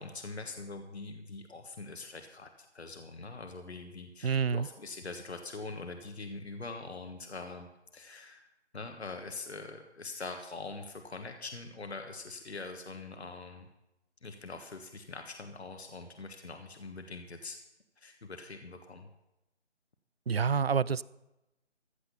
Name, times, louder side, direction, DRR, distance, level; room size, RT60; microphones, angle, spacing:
voice 1, 0.0-7.7 7.9-8.5 8.7-13.7 14.2-17.6 18.0-19.1, left 3 dB, 65° left, 6 dB, 1.5 m, -43 dB
voice 2, 4.2-4.7 20.3-21.0, right 6 dB, 60° right, 21 dB, 0.5 m, -27 dB
15.0 x 7.8 x 6.8 m, 0.92 s
figure-of-eight pair, 165°, 35 cm